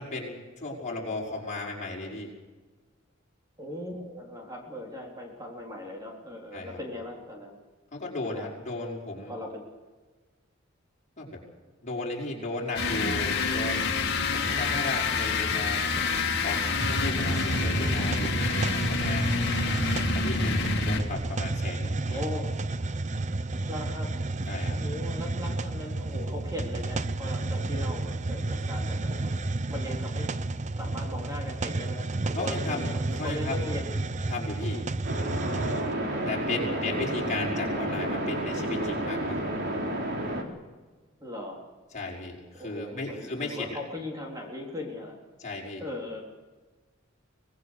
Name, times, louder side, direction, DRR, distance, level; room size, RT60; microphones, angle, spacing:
voice 1, 0.0-2.3 6.5-6.8 7.9-9.3 11.2-11.4 11.8-14.0 14.3-15.8 16.4-19.4 20.1-22.2 24.5-24.7 32.3-33.7 34.3-34.8 36.3-39.5 41.9-43.8 45.4-45.8, left 2 dB, 35° left, -2 dB, 5.5 m, -35 dB
voice 2, 3.6-7.6 8.3-8.5 9.3-9.6 15.9-16.2 22.1-22.7 23.7-24.1 24.6-29.4 29.7-33.9 34.7-34.8 36.7-36.8 41.2-41.7 42.6-45.2 45.8-46.2, left 1 dB, 20° right, -1 dB, 3.7 m, -39 dB
sound 1, 12.7-21.3, left 4 dB, 55° left, 2.6 m, -27 dB
Hiss, 16.7-35.9, right 2 dB, 35° right, 0.7 m, -31 dB
sound 2, 35.0-40.4, right 1 dB, 55° right, 3.3 m, -30 dB
25.0 x 19.5 x 6.5 m, 1.3 s
head